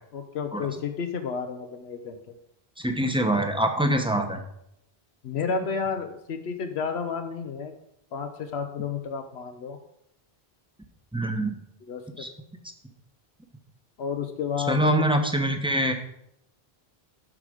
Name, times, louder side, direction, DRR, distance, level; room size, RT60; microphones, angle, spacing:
voice 1, 0.1-2.2 5.2-7.7 8.1-9.8 11.8-12.3 14.0-15.1, left 6 dB, 85° left, 6 dB, 1.0 m, -31 dB
voice 2, 2.8-4.4 11.1-11.5 12.2-12.3 14.6-15.9, right 1 dB, 5° right, 4 dB, 0.8 m, -24 dB
12.5 x 4.9 x 5.0 m, 0.78 s
omnidirectional pair, 1.1 m